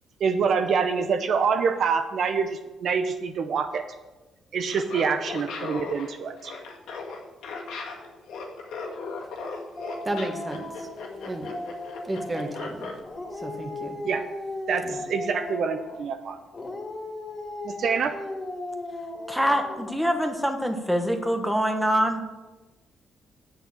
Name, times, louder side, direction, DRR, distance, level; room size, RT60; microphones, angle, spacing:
voice 1, 0.2-3.8 4.5-6.5 14.0-14.3 14.7-16.4 17.6-18.1, right 6 dB, 60° right, 7 dB, 0.7 m, -26 dB
Laughter, 4.6-13.0, left 4 dB, 85° left, 1.8 m, -37 dB
Dog, 9.8-12.6 13.0-16.1 16.5-20.1, left 2 dB, 30° left, 2.5 m, -36 dB
voice 2, 10.0-10.9 11.2-11.5 12.0-12.9 13.3-14.0 14.8-15.0, right 1 dB, 20° right, 4 dB, 1.7 m, -32 dB
voice 3, 19.3-22.2, equal, ahead, 4 dB, 1.2 m, -24 dB
8.0 x 6.6 x 7.6 m, 1.1 s
cardioid pair, 90°, 0 cm